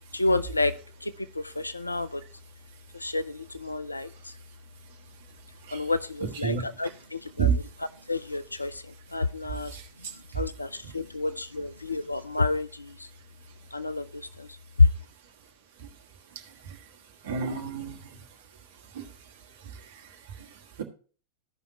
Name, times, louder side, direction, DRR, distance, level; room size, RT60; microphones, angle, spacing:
voice 1, 0.1-0.7 1.0-2.2 2.9-4.1 5.7-7.5 8.1-8.8 9.1-9.7 10.3-12.9 13.7-14.5 14.8-14.9, left 3 dB, 85° left, 0.4 m, -28 dB
voice 2, 6.2-6.6 7.4-7.5 9.7-9.8 17.3-18.0 18.9-19.0, right 6 dB, 60° right, 1.5 m, -27 dB
15.0 x 5.7 x 2.9 m
figure-of-eight pair, 90°, 0 cm